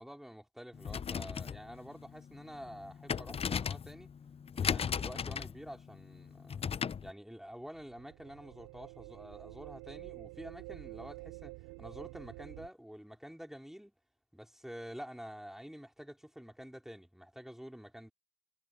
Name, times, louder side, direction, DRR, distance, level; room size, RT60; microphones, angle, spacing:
voice 1, 0.0-4.1 4.5-6.6 7.0-13.9 14.3-18.1, equal, ahead, 3.7 m, -48 dB
sound 1, 0.7-7.1, left 7 dB, 20° left, 0.3 m, -37 dB
sound 2, 7.5-12.7, right 25 dB, 85° right, 7.0 m, -49 dB
supercardioid pair, 90°, 33 cm